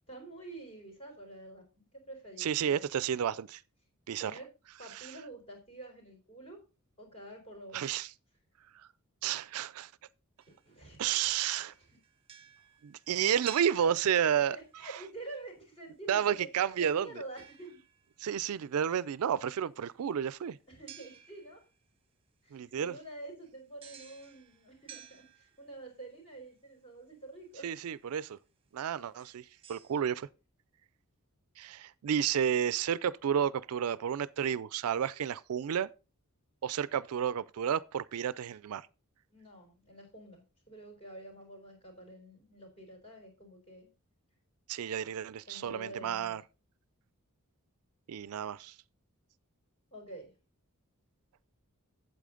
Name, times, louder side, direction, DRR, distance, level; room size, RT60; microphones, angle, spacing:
voice 1, 0.1-2.9 4.2-4.5 4.8-6.6 7.0-7.8 10.5-11.1 11.6-12.0 14.2-16.5 16.8-17.8 20.7-21.6 22.4-27.7 39.3-43.9 45.5-46.4 49.9-50.3, right 2 dB, 25° left, 3.7 m, -48 dB
voice 2, 2.4-3.6 4.1-4.4 4.9-5.1 7.7-8.1 8.8-8.9 9.2-9.9 11.0-11.7 12.8-15.0 16.1-17.1 18.2-20.6 22.5-22.9 27.6-28.4 28.7-30.3 31.6-35.9 36.6-38.9 44.7-46.4 48.1-48.8, right 8 dB, 75° right, 0.4 m, -31 dB
sound 1, 10.4-11.1 11.4-14.7 17.4-18.2 20.9-21.8 23.8-25.9 27.4-27.5 28.2-28.4 29.0-30.0, right 8 dB, 25° right, 1.1 m, -54 dB
8.4 x 8.0 x 3.8 m
head